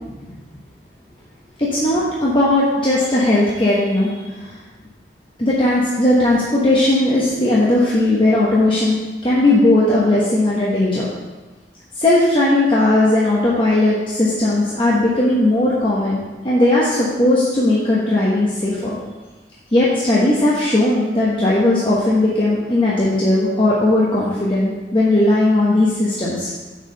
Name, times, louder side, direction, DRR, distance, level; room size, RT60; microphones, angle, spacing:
voice 1, 1.6-4.5 5.4-9.0 9.2-11.1 12.0-19.0 19.7-26.5, left 1 dB, 30° left, -7 dB, 1.1 m, -17 dB
6.5 x 4.9 x 6.5 m, 1.2 s
head